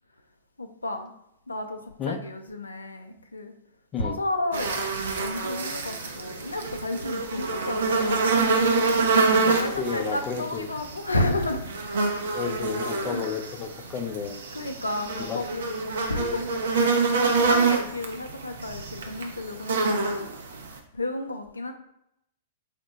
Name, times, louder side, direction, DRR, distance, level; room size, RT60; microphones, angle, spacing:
voice 1, 0.6-1.1 1.5-3.5 4.0-8.4 8.9-12.0 12.4-12.7 13.0-13.3 14.5-17.0 17.3-20.7 20.9-21.7, left 2 dB, 85° left, 5 dB, 0.4 m, -32 dB
sound 1, 4.5-20.8, right 4 dB, 70° right, 0.6 m, -26 dB
voice 2, 9.5-10.7 12.3-14.7 15.2-15.4, left 6 dB, 30° left, 5 dB, 0.5 m, -32 dB
4.2 x 2.1 x 3.9 m, 0.78 s
figure-of-eight pair, 105°, 0 cm